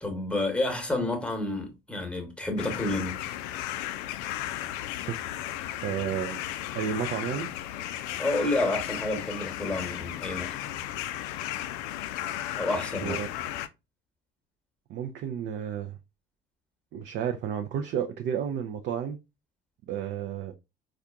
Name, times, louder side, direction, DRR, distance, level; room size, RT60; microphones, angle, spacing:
voice 1, 0.0-3.2 8.2-10.5 12.5-13.2, left 2 dB, 5° left, 1.2 m, -29 dB
sound 1, 2.6-13.7, left 13 dB, 60° left, 0.4 m, -35 dB
voice 2, 5.8-6.4 6.7-7.5 13.0-13.3 14.9-16.0 16.9-19.2 19.9-20.5, right 8 dB, 40° right, 0.5 m, -31 dB
4.4 x 2.4 x 2.4 m
figure-of-eight pair, 55°, 29 cm